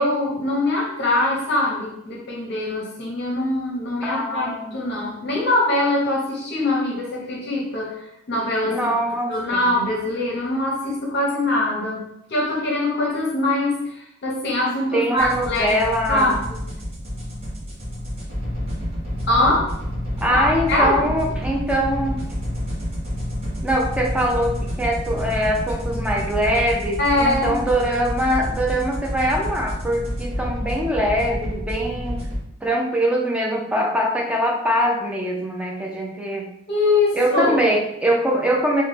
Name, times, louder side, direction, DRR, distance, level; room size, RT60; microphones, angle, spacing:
voice 1, 0.0-9.0 9.3-15.8 16.1-16.3 19.3-19.7 20.3-20.4 20.7-21.1 27.0-27.6 36.7-37.6, left 2 dB, 50° left, -3 dB, 0.6 m, -23 dB
voice 2, 4.0-4.8 8.7-9.6 14.9-16.4 20.2-22.2 23.6-32.2 32.6-36.5 37.1-38.8, equal, 5° right, -2 dB, 0.4 m, -23 dB
sound 1, 15.2-32.4, equal, 30° right, 0.9 m, -29 dB
3.6 x 2.1 x 3.3 m, 0.79 s
head